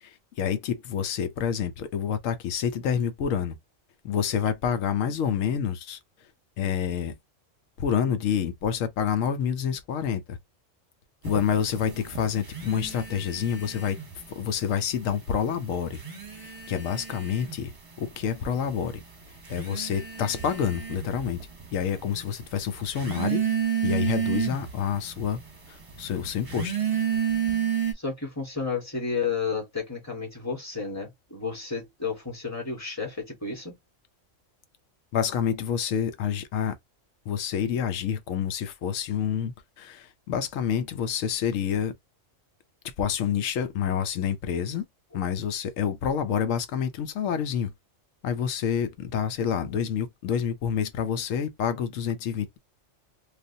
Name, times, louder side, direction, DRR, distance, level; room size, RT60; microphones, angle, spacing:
voice 1, 0.0-3.6 4.0-6.0 6.6-7.1 7.8-10.4 11.2-14.0 14.4-16.0 16.4-17.7 18.0-19.0 19.5-21.4 21.7-23.4 23.8-25.4 25.7-26.8 35.1-36.8 37.3-41.9 43.0-44.9 45.1-47.7 48.2-52.6, left 8 dB, 90° left, 1.0 m, -28 dB
sound 1, 11.2-14.3 14.6-15.4 15.8-27.9, right 8 dB, 30° right, 0.8 m, -31 dB
voice 2, 27.9-33.7, left 5 dB, 15° left, 1.4 m, -32 dB
3.2 x 2.4 x 2.6 m
omnidirectional pair, 1.3 m